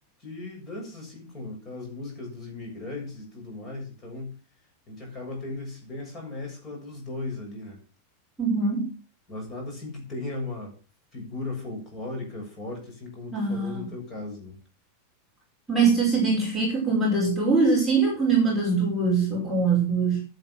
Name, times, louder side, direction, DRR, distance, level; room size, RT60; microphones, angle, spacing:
voice 1, 0.2-4.3 4.9-7.8 9.3-10.7 11.1-14.6, left 2 dB, 25° left, 1 dB, 7.1 m, -37 dB
voice 2, 8.4-8.9 13.3-13.8 15.7-20.2, right 4 dB, ahead, -5 dB, 5.3 m, -23 dB
11.0 x 11.0 x 6.0 m, 0.34 s
supercardioid pair, 170°, 0 cm